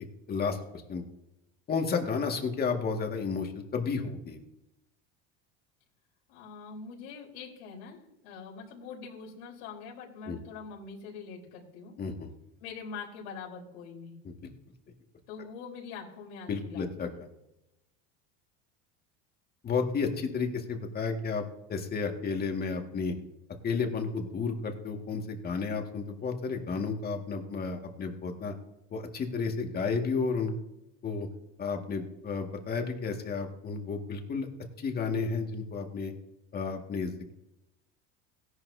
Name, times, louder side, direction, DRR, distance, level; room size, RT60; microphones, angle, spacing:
voice 1, 0.3-1.0 1.7-4.4 10.3-10.4 12.0-12.3 14.2-14.5 16.5-17.1 19.6-21.4 21.7-23.1 23.6-28.5 28.9-30.5 31.0-31.3 31.6-34.5 34.8-36.1 36.5-37.3, left 5 dB, 30° left, 3 dB, 2.0 m, -32 dB
voice 2, 6.3-11.9 12.6-14.2 15.3-17.2, left 5 dB, 80° left, -3 dB, 4.0 m, -44 dB
17.0 x 11.0 x 2.8 m, 0.89 s
supercardioid pair, 130°, 32 cm